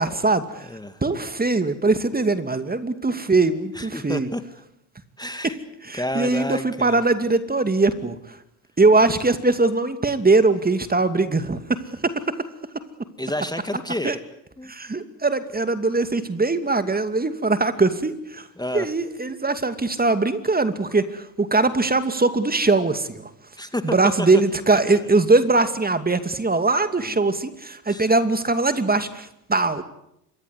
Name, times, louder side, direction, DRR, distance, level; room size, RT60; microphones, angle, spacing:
voice 1, 0.0-0.6 1.0-4.3 5.9-8.1 8.8-12.1 14.0-14.1 14.7-18.4 18.7-23.3 23.8-29.8, right 3 dB, 20° right, 10 dB, 2.5 m, -21 dB
voice 2, 0.7-1.0 3.7-4.4 5.2-5.6 5.9-7.0 13.2-14.2 14.6-14.7 18.6-18.9 23.6-24.3 27.0-27.2 27.9-28.1, left 1 dB, 10° left, 9 dB, 2.1 m, -30 dB
27.0 x 23.0 x 8.3 m, 0.79 s
hypercardioid pair, 70°, 48 cm